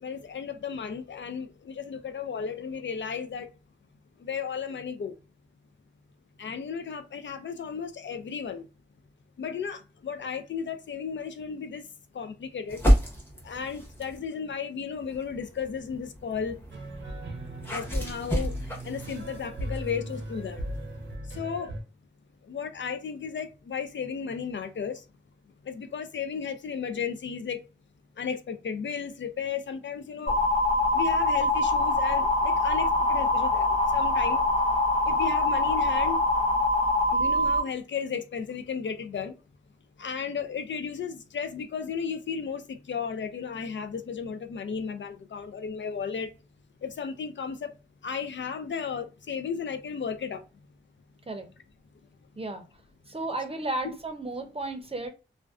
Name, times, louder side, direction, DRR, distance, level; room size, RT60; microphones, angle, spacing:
voice 1, 0.0-3.5 4.2-5.1 6.4-8.7 9.4-11.8 12.1-12.8 13.4-16.6 17.7-18.5 18.8-20.6 21.3-21.7 22.5-25.0 25.7-27.6 28.2-30.4 30.9-34.4 35.1-36.2 37.1-39.3 40.0-46.3 46.8-47.7 48.0-50.4, left 6 dB, 75° left, 0.4 m, -34 dB
sound 1, 12.7-14.3 14.9-21.2, equal, 10° left, 0.8 m, -30 dB
sound 2, 16.7-21.8, right 1 dB, 80° right, 0.6 m, -38 dB
sound 3, 30.3-37.6, left 2 dB, 40° left, 0.7 m, -24 dB
voice 2, 53.1-55.1, right 2 dB, 30° right, 0.5 m, -33 dB
2.5 x 2.1 x 2.3 m
wide cardioid pair, 80°, 19 cm